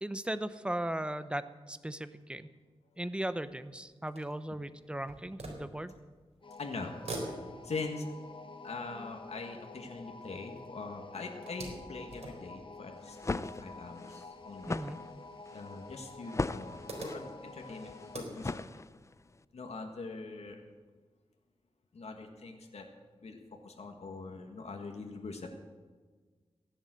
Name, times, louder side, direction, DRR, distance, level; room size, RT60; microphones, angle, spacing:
voice 1, 0.0-2.5 3.0-5.9 14.7-15.0, right 1 dB, 10° right, 12 dB, 0.8 m, -37 dB
sound 1, 3.4-6.4 6.7-10.7 11.0-13.7 14.6-14.7 15.0-15.1 16.2-18.9, right 2 dB, 70° right, 4.0 m, -47 dB
sound 2, 6.4-18.3, left 3 dB, 50° left, 1.1 m, -49 dB
voice 2, 6.6-7.4 7.6-8.1 8.6-14.8 15.5-18.7 19.5-20.6 21.9-22.9 23.2-25.5, left 3 dB, 75° left, 3 dB, 1.8 m, -42 dB
sound 3, 13.0-19.3, left 3 dB, 25° left, 0.5 m, -39 dB
16.0 x 11.0 x 7.8 m, 1.4 s
wide cardioid pair, 80°, 11 cm